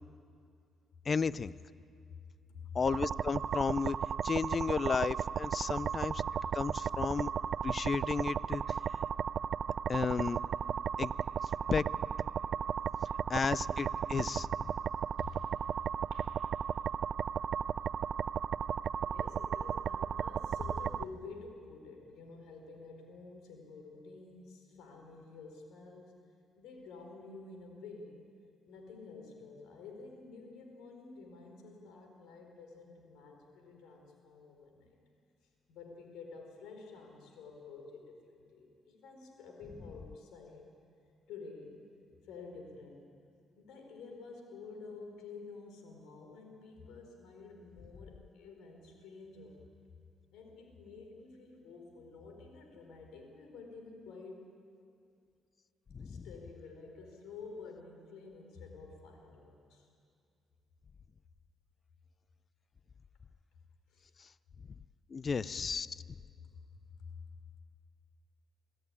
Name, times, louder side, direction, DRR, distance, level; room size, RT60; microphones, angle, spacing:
voice 1, 1.1-1.5 2.7-4.0 4.2-6.2 6.5-7.3 7.6-8.6 9.9-10.4 11.0-11.1 11.4-11.9 13.3-14.7 55.9-56.3 65.1-66.0, left 5 dB, 40° left, 19 dB, 0.5 m, -33 dB
sound 1, 2.9-21.0, right 8 dB, 55° right, 0.4 m, -35 dB
voice 2, 15.2-15.5 15.8-16.4 19.0-26.2 26.6-28.2 28.7-35.0 35.7-40.6 41.3-41.8 42.2-43.1 43.6-49.7 50.3-54.5 56.0-59.9 63.9-64.1 67.0-67.2, left 4 dB, 90° left, 3 dB, 4.3 m, -50 dB
24.0 x 14.5 x 9.8 m, 2.3 s
cardioid pair, 90°, 0 cm